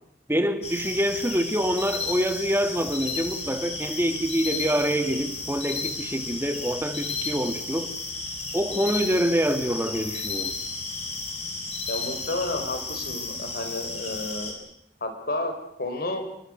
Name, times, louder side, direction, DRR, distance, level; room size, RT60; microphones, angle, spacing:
voice 1, 0.3-7.9 8.5-10.5, equal, 10° right, 9 dB, 1.8 m, -26 dB
sound 1, 0.6-14.5, left 3 dB, 35° left, 5.9 m, -33 dB
voice 2, 11.9-14.5 15.0-15.5 15.8-16.2, left 2 dB, 55° left, 6 dB, 4.6 m, -31 dB
28.0 x 23.0 x 6.4 m, 0.72 s
head